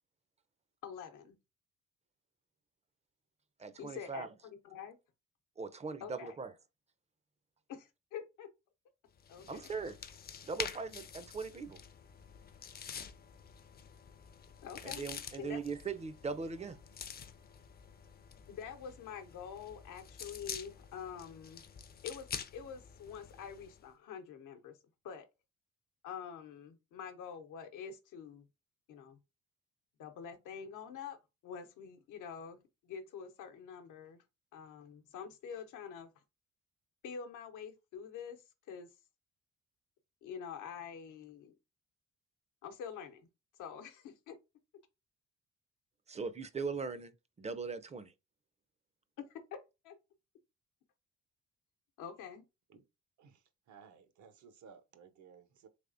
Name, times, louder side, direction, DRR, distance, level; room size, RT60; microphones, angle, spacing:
voice 1, 0.8-1.4 3.8-5.0 6.0-6.3 7.7-8.5 9.3-9.7 14.6-15.1 15.4-15.6 18.5-21.6 22.0-22.3 22.5-24.8 25.0-25.3 26.0-28.5 28.9-29.2 30.0-31.2 31.4-34.2 34.5-36.1 37.0-38.9 40.2-41.6 42.6-43.3 43.6-44.4 49.2-50.0 52.0-52.4, left 7 dB, 85° left, 0.8 m, -46 dB
voice 2, 3.6-4.3 5.6-6.5 9.5-10.0 10.4-11.8 14.8-16.8 46.1-47.1 47.4-48.1, right 4 dB, 20° right, 0.4 m, -40 dB
sound 1, 9.2-23.8, left 7 dB, 30° left, 0.4 m, -48 dB
voice 3, 53.2-55.7, right 6 dB, 75° right, 0.8 m, -58 dB
3.4 x 3.2 x 2.5 m
cardioid pair, 90°, 30 cm